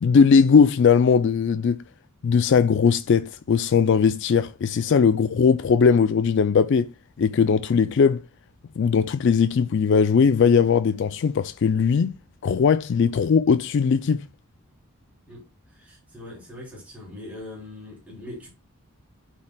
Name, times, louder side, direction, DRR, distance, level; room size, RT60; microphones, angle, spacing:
voice 1, 0.0-1.8 2.2-6.9 7.2-8.2 8.8-12.1 12.4-14.3, left 6 dB, 55° left, 0.3 m, -19 dB
voice 2, 15.7-18.5, left 1 dB, 5° right, 3.0 m, -41 dB
12.0 x 4.6 x 2.2 m
head